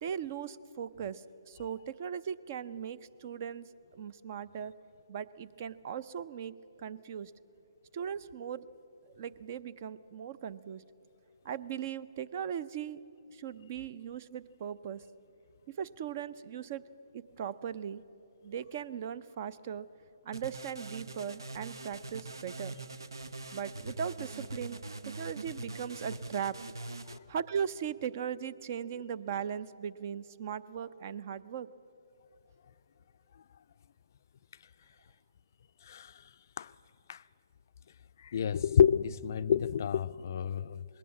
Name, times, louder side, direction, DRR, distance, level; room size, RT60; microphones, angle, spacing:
voice 1, 0.0-4.7 5.1-6.5 6.8-7.3 7.9-8.7 9.2-10.8 11.4-13.0 13.3-15.0 15.8-16.8 17.1-18.0 18.4-19.9 20.2-22.8 23.5-26.6 27.3-31.7, right 8 dB, 40° right, 18 dB, 0.5 m, -38 dB
sound 1, 20.3-27.2, right 2 dB, 80° right, 0.8 m, -43 dB
voice 2, 35.8-36.2 36.6-36.7 37.1-37.2 38.2-40.9, left 8 dB, 50° left, 15 dB, 0.4 m, -29 dB
20.5 x 18.5 x 7.4 m, 2.9 s
figure-of-eight pair, 140°, 2 cm